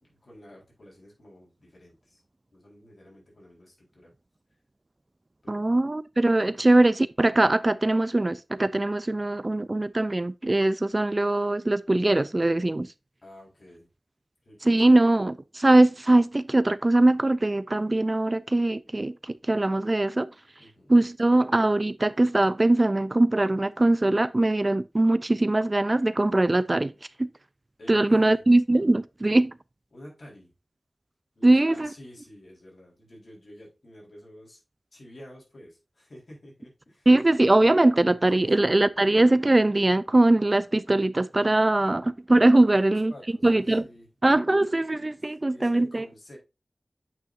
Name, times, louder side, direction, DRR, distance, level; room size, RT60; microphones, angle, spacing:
voice 1, 0.0-2.2 2.5-4.1 5.4-5.7 6.5-6.7 13.2-13.9 14.4-15.0 20.6-21.1 27.8-28.4 29.9-30.5 31.4-34.6 34.9-37.1 38.3-38.7 42.5-44.1 45.5-46.4, left 1 dB, 60° left, 4.1 m, -50 dB
voice 2, 5.5-12.9 14.6-20.3 20.9-26.9 27.2-27.3 27.9-29.6 31.4-31.9 37.1-43.1 43.4-43.9 44.2-46.1, right 2 dB, 30° right, 0.4 m, -21 dB
8.7 x 5.6 x 2.5 m
wide cardioid pair, 80°, 0 cm